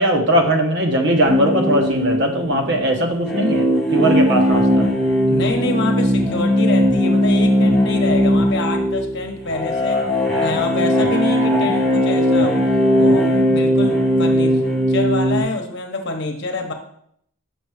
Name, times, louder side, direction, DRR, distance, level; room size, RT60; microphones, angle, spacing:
voice 1, 0.0-3.6 3.9-4.9, right 1 dB, 55° right, 3 dB, 1.1 m, -19 dB
sound 1, 1.2-15.4, equal, ahead, 2.2 m, -18 dB
voice 2, 5.3-10.1 10.4-12.6 12.9-16.7, left 2 dB, 55° left, 4 dB, 1.0 m, -26 dB
6.1 x 5.9 x 4.9 m, 0.69 s
head